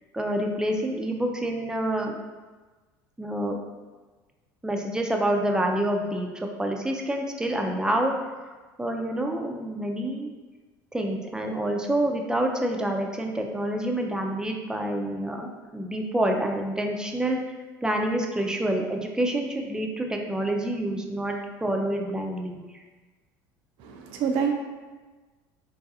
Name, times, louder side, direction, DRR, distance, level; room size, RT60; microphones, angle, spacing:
voice 1, 0.1-2.2 3.2-3.6 4.6-6.3 6.6-8.3 8.8-10.3 10.9-17.4 17.8-21.3 21.6-22.6, right 1 dB, 5° right, 2 dB, 0.4 m, -27 dB
voice 2, 23.8-24.5, right 6 dB, 60° right, 2 dB, 0.4 m, -26 dB
3.8 x 2.6 x 2.6 m, 1.3 s
hypercardioid pair, 75°, 11 cm